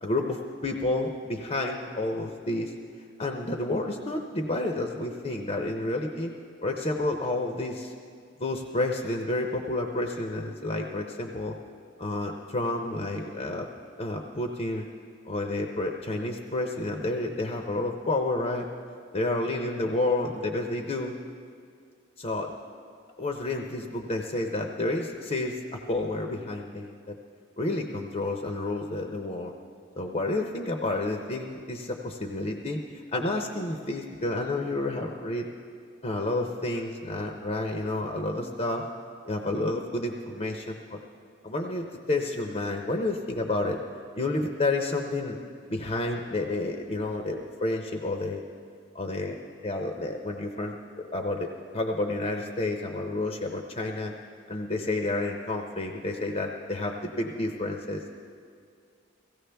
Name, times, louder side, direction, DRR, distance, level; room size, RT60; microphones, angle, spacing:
voice 1, 0.0-2.7 3.2-6.3 6.6-7.9 8.4-11.6 12.0-13.7 14.0-14.9 15.3-18.7 19.1-21.2 22.2-22.5 23.2-27.1 27.6-29.5 30.0-35.5 36.0-38.8 39.3-41.0 41.4-43.8 44.2-45.4 45.7-48.4 48.9-49.4 49.6-50.7 51.1-54.1 54.5-58.0, left 2 dB, 35° left, 3 dB, 0.6 m, -30 dB
17.0 x 16.0 x 3.4 m, 2.3 s
head